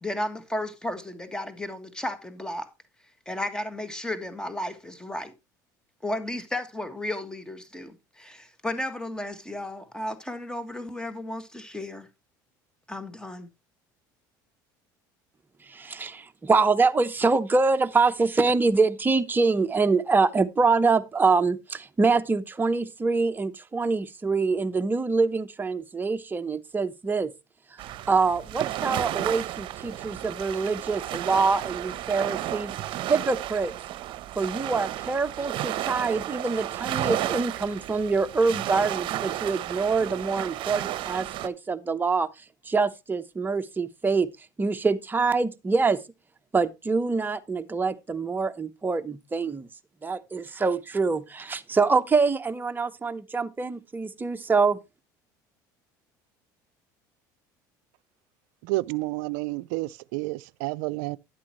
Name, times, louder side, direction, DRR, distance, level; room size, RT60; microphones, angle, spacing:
voice 1, 0.0-2.7 3.3-5.3 6.0-12.1 12.9-13.5, left 1 dB, 10° left, 1.7 m, -34 dB
voice 2, 15.7-27.3 28.1-32.7 33.1-33.7 34.3-42.3 42.7-44.3 44.6-46.0 46.5-49.7 50.0-54.8, right 4 dB, 20° right, 0.9 m, -25 dB
sound 1, 27.8-41.5, right 13 dB, 55° right, 0.8 m, -32 dB
voice 3, 58.6-61.2, right 21 dB, 75° right, 0.4 m, -30 dB
11.0 x 8.4 x 3.0 m
supercardioid pair, 85°, 10 cm